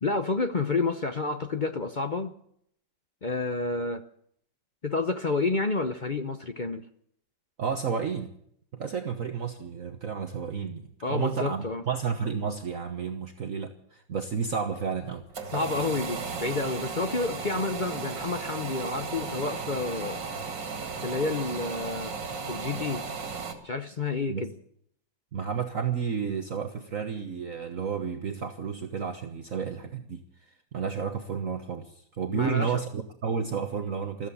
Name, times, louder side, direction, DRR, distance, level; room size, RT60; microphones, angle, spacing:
voice 1, 0.0-2.3 3.2-4.0 4.8-6.9 11.0-11.8 15.5-20.2 21.0-22.1 22.5-23.0 23.6-24.5 32.3-32.8, left 3 dB, 40° left, 0.7 m, -29 dB
voice 2, 7.6-8.3 8.7-15.2 24.3-24.5 25.3-34.3, right 6 dB, 50° right, 1.5 m, -31 dB
sound 1, 15.0-23.5, right 5 dB, 85° right, 2.9 m, -35 dB
15.0 x 14.0 x 7.1 m
omnidirectional pair, 1.9 m